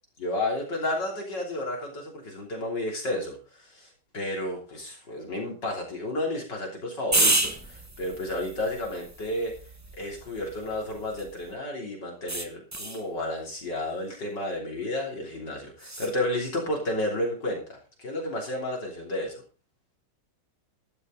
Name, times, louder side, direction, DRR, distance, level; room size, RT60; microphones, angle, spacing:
voice 1, 0.2-9.5 10.0-19.4, left 1 dB, 55° left, 0 dB, 3.8 m, -32 dB
sound 1, 7.1-11.5 12.3-13.1 15.8-16.1, right 2 dB, 15° right, 0.7 m, -30 dB
13.5 x 11.5 x 3.9 m, 0.34 s
omnidirectional pair, 2.3 m